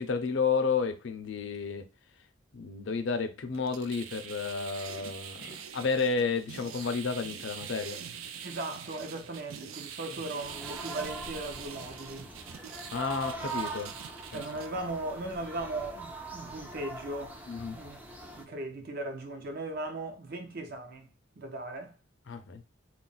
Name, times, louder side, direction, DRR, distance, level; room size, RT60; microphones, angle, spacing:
voice 1, 0.0-1.8 2.5-8.0 12.9-13.9 14.3-14.4 17.5-17.8 22.3-22.6, left 5 dB, 60° left, 0.5 m, -31 dB
sound 1, 3.5-14.7, right 8 dB, 85° right, 0.4 m, -44 dB
voice 2, 8.4-12.3 14.3-17.4 17.7-21.1 21.4-21.9, right 2 dB, 50° right, 0.6 m, -38 dB
sound 2, 10.4-18.4, right 2 dB, 10° right, 0.4 m, -42 dB
2.4 x 2.0 x 3.8 m
head